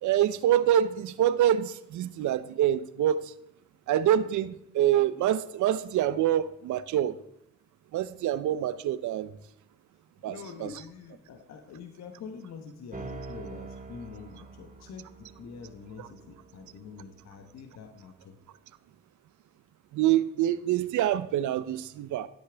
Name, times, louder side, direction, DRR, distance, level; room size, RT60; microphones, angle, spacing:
voice 1, 0.0-3.2 3.9-7.2 7.9-9.3 10.2-10.7 16.0-16.1 19.9-22.3, right 11 dB, 75° right, 15 dB, 0.7 m, -26 dB
voice 2, 10.2-18.4, left 6 dB, 60° left, 6 dB, 1.1 m, -45 dB
sound 1, 12.9-17.8, right 3 dB, 25° right, 1.4 m, -46 dB
13.0 x 8.4 x 3.5 m, 0.81 s
cardioid pair, 90°, 30 cm